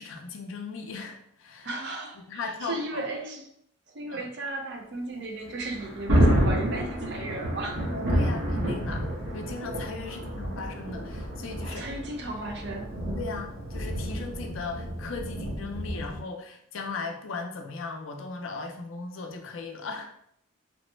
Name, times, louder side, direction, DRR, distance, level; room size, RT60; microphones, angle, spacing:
voice 1, 0.0-1.7 2.3-3.0 4.1-4.3 7.9-9.1 9.3-11.8 13.1-20.2, left 4 dB, 70° left, 4 dB, 0.4 m, -37 dB
voice 2, 1.6-3.4 3.9-7.9 10.0-10.4 11.6-12.9, right 2 dB, 55° right, 2 dB, 0.5 m, -36 dB
Thunder, 5.5-16.2, equal, 70° right, 1.0 m, -29 dB
3.1 x 2.0 x 3.1 m, 0.70 s
head